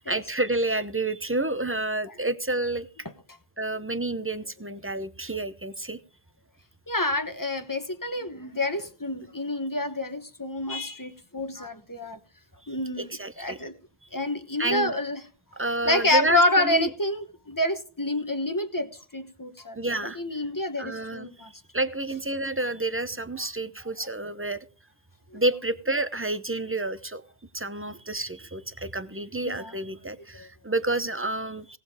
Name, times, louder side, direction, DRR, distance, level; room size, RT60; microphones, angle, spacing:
voice 1, 0.0-2.9 3.6-6.0 13.0-13.6 14.6-15.0 15.6-16.9 19.8-20.2 20.8-21.3 21.7-24.6 25.3-27.2 27.5-31.8, right 2 dB, 15° right, 0.6 m, -29 dB
voice 2, 6.9-12.2 12.7-13.8 14.1-15.2 15.8-19.8 20.1-21.5 25.3-25.4 29.4-29.7 30.4-30.5, left 1 dB, 20° left, 1.1 m, -28 dB
18.0 x 7.5 x 4.9 m
omnidirectional pair, 1.1 m